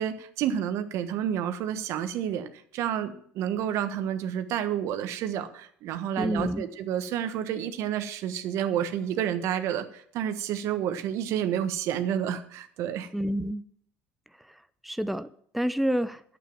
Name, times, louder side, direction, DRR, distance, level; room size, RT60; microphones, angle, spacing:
voice 1, 0.0-13.1, right 9 dB, 60° right, 9 dB, 1.3 m, -30 dB
voice 2, 6.2-6.7 13.1-13.6 14.5-15.3 15.5-16.2, equal, ahead, 12 dB, 0.6 m, -28 dB
11.5 x 8.5 x 7.2 m, 0.63 s
hypercardioid pair, 65°, 5 cm